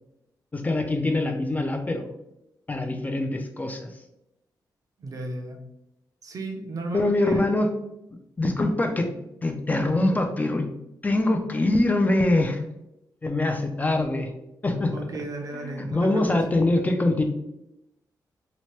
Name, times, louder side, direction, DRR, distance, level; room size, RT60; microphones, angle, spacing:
voice 1, 0.5-2.1 2.7-3.9 6.9-7.7 8.4-9.1 9.4-10.7 11.0-12.6 13.2-14.3 14.6-14.9 15.5-17.2, left 2 dB, 20° left, 4 dB, 0.4 m, -24 dB
voice 2, 5.0-5.6 6.2-7.4 14.9-16.2, right 2 dB, 50° right, 3 dB, 0.6 m, -34 dB
2.8 x 2.1 x 3.1 m, 0.85 s
cardioid pair, 95°, 7 cm